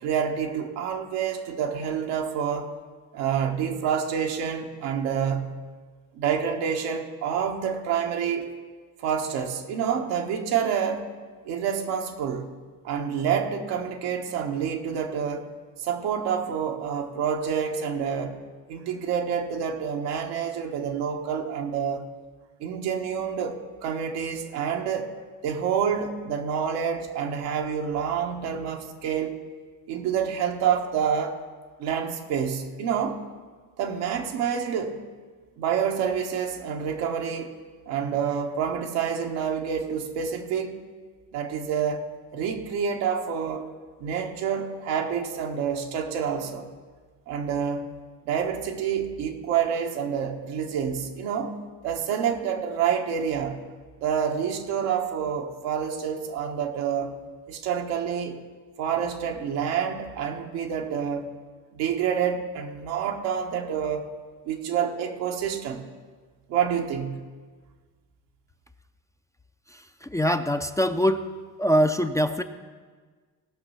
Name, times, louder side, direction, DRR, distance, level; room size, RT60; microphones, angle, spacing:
voice 1, 0.0-2.7 3.1-5.6 6.1-8.5 9.0-11.1 11.4-12.5 12.8-15.4 15.8-18.3 18.7-22.1 22.6-25.1 25.4-29.4 29.9-31.4 31.8-33.2 33.8-35.0 35.6-37.6 37.9-40.8 41.3-42.0 42.3-43.7 44.0-46.7 47.3-47.9 48.2-51.6 51.8-53.6 54.0-57.1 57.5-58.4 58.8-61.3 61.7-64.1 64.5-65.8 66.5-67.2, right 7 dB, 90° right, 3 dB, 1.3 m, -28 dB
voice 2, 70.0-71.2 71.6-72.4, equal, 10° left, 7 dB, 0.4 m, -23 dB
17.5 x 6.1 x 5.7 m, 1.5 s
supercardioid pair, 90°, 38 cm